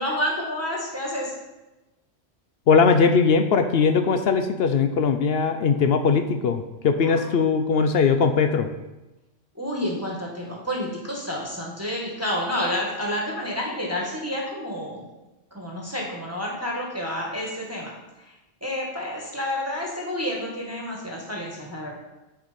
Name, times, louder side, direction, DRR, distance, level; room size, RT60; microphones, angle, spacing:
voice 1, 0.0-1.3 7.0-7.3 9.5-15.0 15.5-17.9 18.3-18.4 18.6-21.9, equal, 10° right, -3 dB, 1.4 m, -29 dB
voice 2, 2.7-8.7, left 5 dB, 65° left, 7 dB, 0.7 m, -20 dB
9.7 x 4.9 x 4.2 m, 1.0 s
omnidirectional pair, 1.3 m